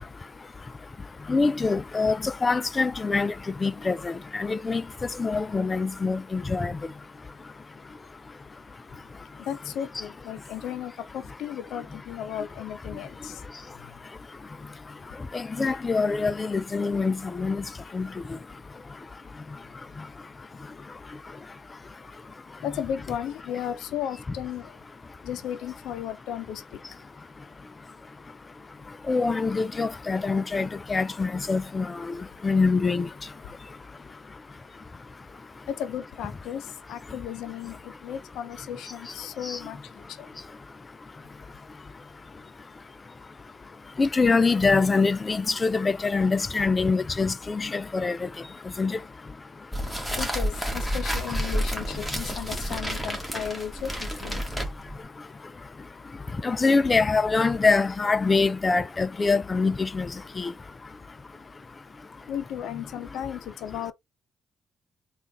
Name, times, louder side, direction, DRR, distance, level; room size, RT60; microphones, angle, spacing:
voice 1, 1.3-3.3 3.6-4.8 5.2-6.7 15.3-17.6 17.9-18.1 29.1-32.1 32.4-33.1 39.5-39.6 44.0-48.3 48.8-49.0 56.4-60.1 60.4-60.5, left 4 dB, 30° left, 0.4 m, -24 dB
voice 2, 9.4-13.4 13.8-14.0 22.6-24.8 25.2-26.8 35.7-39.8 40.1-40.3 50.1-54.4 62.3-63.9, left 9 dB, 85° left, 0.6 m, -35 dB
sound 1, 49.7-55.0, equal, ahead, 1.5 m, -30 dB
3.8 x 2.4 x 3.4 m
cardioid pair, 90°, 0 cm